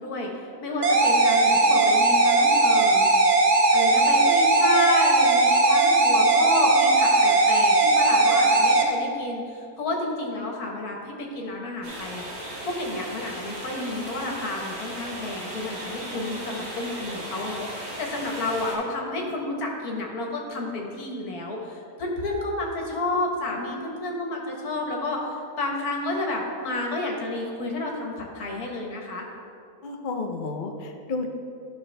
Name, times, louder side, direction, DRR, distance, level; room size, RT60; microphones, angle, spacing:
voice 1, 0.0-3.1 3.7-12.3 12.6-29.2, left 2 dB, 80° left, 0 dB, 1.7 m, -31 dB
sound 1, 0.8-8.8, right 2 dB, 45° right, 0.5 m, -18 dB
sound 2, 11.8-18.8, right 1 dB, 30° right, 1.6 m, -36 dB
voice 2, 29.8-31.3, left 3 dB, 50° left, 3 dB, 0.6 m, -31 dB
12.0 x 5.9 x 3.3 m, 2.5 s
omnidirectional pair, 1.6 m